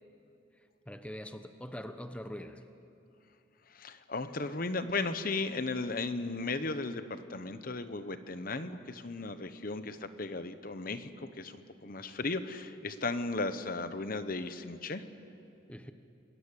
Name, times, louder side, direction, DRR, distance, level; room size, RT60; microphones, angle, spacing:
voice 1, 0.6-2.6 15.7-15.9, equal, 5° left, 8 dB, 0.9 m, -43 dB
voice 2, 3.7-11.6 11.8-15.0, left 3 dB, 45° left, 11 dB, 1.0 m, -36 dB
29.0 x 20.0 x 8.4 m, 2.6 s
head